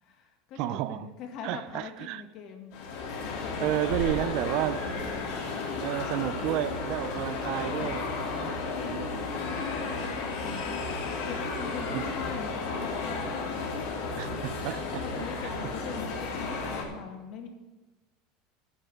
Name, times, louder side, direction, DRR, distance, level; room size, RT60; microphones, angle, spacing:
voice 1, 0.0-2.7 3.4-5.0 7.5-8.0 8.5-13.5 14.9-17.5, left 6 dB, 50° left, 3 dB, 1.8 m, -42 dB
voice 2, 0.6-1.1 1.4-2.2 3.6-4.8 5.8-9.2 11.9-12.0 14.2-15.5 15.9-16.0, right 14 dB, 55° right, 16 dB, 0.4 m, -32 dB
sound 1, 2.7-16.8, left 3 dB, 70° left, 2.9 m, -33 dB
9.9 x 6.7 x 8.0 m, 1.1 s
supercardioid pair, 150°, 0 cm